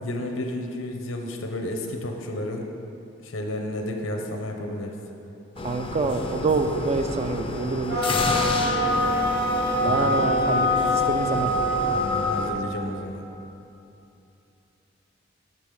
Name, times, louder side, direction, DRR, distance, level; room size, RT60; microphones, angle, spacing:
voice 1, 0.0-2.7 3.2-4.9 8.6-8.8 9.8-10.3 11.9-13.3, left 1 dB, 85° left, 3 dB, 0.8 m, -32 dB
sound 1, 5.6-12.5, left 2 dB, 25° left, 0.5 m, -31 dB
voice 2, 5.6-8.0 9.8-11.5, right 3 dB, 30° right, 7 dB, 0.4 m, -26 dB
sound 2, 7.9-12.5, left 1 dB, 60° right, 1.9 m, -24 dB
6.1 x 5.3 x 6.5 m, 2.9 s
head